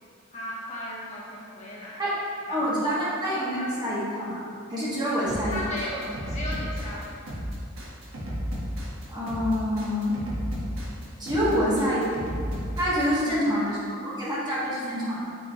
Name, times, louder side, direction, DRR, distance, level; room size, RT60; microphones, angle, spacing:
voice 1, 0.3-2.0 2.5-3.0 5.5-7.4 11.5-12.2 13.2-13.6 14.8-15.0, left 1 dB, 35° left, -6 dB, 1.1 m, -37 dB
voice 2, 2.5-4.4 4.7-5.7 9.1-10.2 11.2-12.1 12.8-13.8 14.0-15.3, equal, 20° right, -8 dB, 1.5 m, -26 dB
sound 1, 5.3-13.0, equal, 75° right, 1.5 m, -33 dB
7.2 x 5.0 x 3.1 m, 2.4 s
head